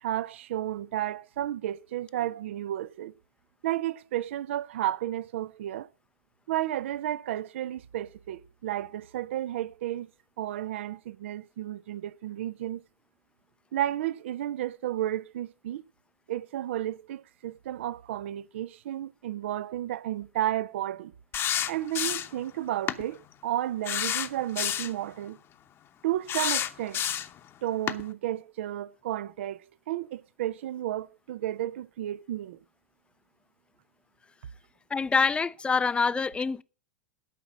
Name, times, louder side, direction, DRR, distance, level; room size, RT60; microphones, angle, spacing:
voice 1, 0.0-3.1 3.6-5.9 6.5-10.1 10.4-12.8 13.7-15.8 16.3-21.1 21.7-25.4 26.0-27.0 27.6-32.6, right 13 dB, 65° right, 0.5 m, -32 dB
sound 1, 21.3-22.4 22.9-23.0 23.8-25.0 26.3-27.4 27.9-28.0, left 10 dB, 35° left, 0.9 m, -29 dB
voice 2, 34.9-36.6, left 5 dB, 15° left, 0.5 m, -25 dB
12.5 x 6.0 x 7.3 m
figure-of-eight pair, 90°, 7 cm